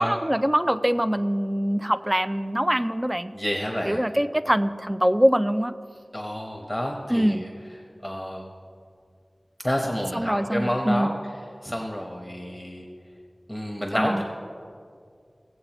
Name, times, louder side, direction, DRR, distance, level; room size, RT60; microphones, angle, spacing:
voice 1, 0.0-3.3 3.9-5.7 7.1-7.4 10.1-11.1 13.9-14.2, equal, 15° right, 12 dB, 0.4 m, -23 dB
voice 2, 3.3-4.0 6.1-7.5 8.0-8.4 9.6-11.1 11.6-12.8 13.5-14.2, equal, 5° left, 1 dB, 1.0 m, -29 dB
18.0 x 7.7 x 3.0 m, 2.3 s
wide cardioid pair, 60°, 0 cm